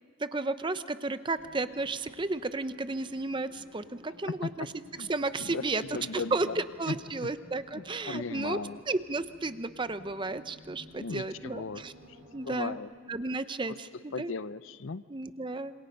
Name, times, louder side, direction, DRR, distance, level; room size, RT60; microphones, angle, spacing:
voice 1, 0.2-4.7 5.0-5.8 6.1-8.6 8.9-11.9 12.3-12.8 13.1-14.3 15.1-15.7, right 3 dB, 25° right, 12 dB, 0.7 m, -33 dB
sound 1, 1.3-12.8, equal, 55° right, 3.5 m, -54 dB
voice 2, 5.4-6.6 6.9-7.0 7.7-8.8 11.0-11.8 12.3-12.9 13.6-13.8 14.1-15.0, left 4 dB, 65° left, 15 dB, 0.6 m, -37 dB
27.0 x 25.5 x 5.3 m, 2.1 s
head